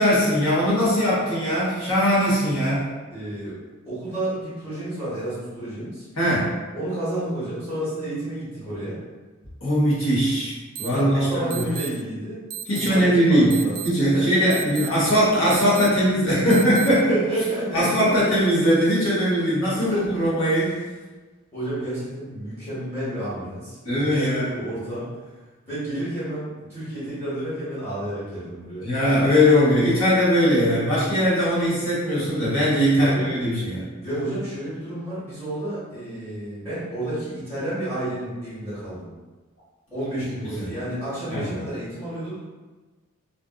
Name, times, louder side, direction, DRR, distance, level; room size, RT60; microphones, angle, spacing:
voice 1, 0.0-2.9 6.2-6.5 9.6-11.6 12.6-13.5 13.8-17.1 17.7-20.7 23.8-24.5 28.8-33.9 40.5-40.7 41.3-41.6, equal, 70° left, -8 dB, 1.1 m, -20 dB
voice 2, 3.1-3.5 3.8-6.0 6.7-9.0 10.9-13.7 14.0-14.3 16.9-17.9 19.7-20.2 21.5-25.1 25.6-28.9 33.0-33.3 34.0-39.1 39.9-42.4, right 1 dB, 10° left, -13 dB, 1.1 m, -30 dB
sound 1, 10.7-10.9 11.5-11.9 12.5-12.9 13.5-13.9 14.5-14.9 15.5-15.9 16.5-16.9, right 10 dB, 50° right, 0.3 m, -33 dB
2.4 x 2.4 x 2.4 m, 1.3 s
head